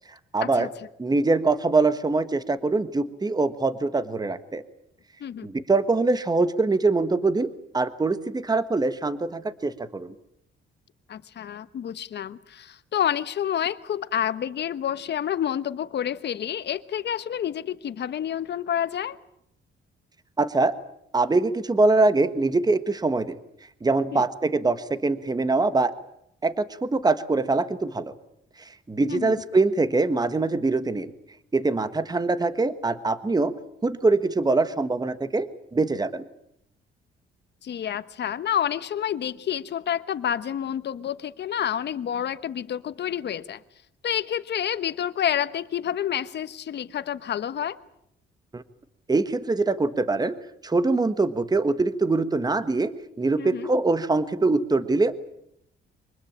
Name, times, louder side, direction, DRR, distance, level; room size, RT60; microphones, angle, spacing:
voice 1, 0.3-0.7 1.0-4.6 5.4-10.1 20.4-20.7 21.1-23.3 23.8-25.9 26.4-28.1 28.9-31.1 31.5-33.5 33.8-36.2 48.5-48.6 49.1-50.3 50.6-55.1, right 3 dB, 20° right, 12 dB, 1.4 m, -23 dB
voice 2, 11.1-19.2 24.1-24.3 29.1-29.5 37.6-43.6 44.0-47.8 53.4-53.7, left 9 dB, 60° left, 14 dB, 1.2 m, -29 dB
25.0 x 20.5 x 8.7 m, 0.75 s
cardioid pair, 90°, 20 cm